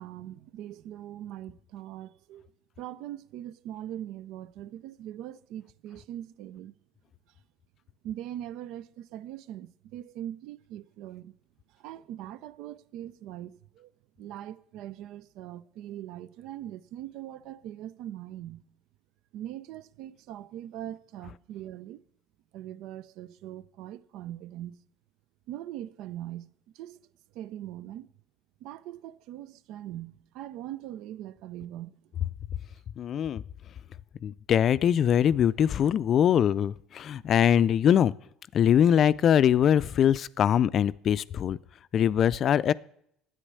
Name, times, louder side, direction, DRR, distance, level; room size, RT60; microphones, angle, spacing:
voice 1, 0.0-2.5 2.8-6.7 8.0-11.3 11.7-13.9 14.2-18.6 19.3-22.0 22.5-24.8 25.5-26.5 26.7-27.0 27.3-28.1 28.6-31.9, right 12 dB, 65° right, 0.4 m, -41 dB
voice 2, 33.0-33.4 34.2-38.1 38.5-41.6 41.9-42.7, left 9 dB, 50° left, 0.4 m, -22 dB
10.0 x 9.0 x 6.7 m
hypercardioid pair, 70°, 0 cm